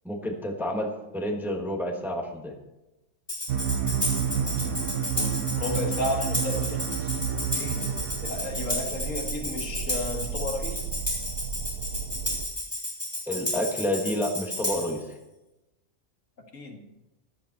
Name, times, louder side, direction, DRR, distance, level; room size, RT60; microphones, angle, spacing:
voice 1, 0.0-2.5 13.3-15.0, equal, ahead, 2 dB, 1.2 m, -29 dB
Tambourine, 3.3-15.0, left 1 dB, 15° left, 3.7 m, -32 dB
sound 1, 3.5-12.5, right 8 dB, 90° right, 1.2 m, -31 dB
voice 2, 5.1-7.2 7.5-7.9 8.2-10.9 16.5-16.8, left 2 dB, 70° left, 2 dB, 2.0 m, -33 dB
14.5 x 10.5 x 4.2 m, 0.97 s
omnidirectional pair, 1.4 m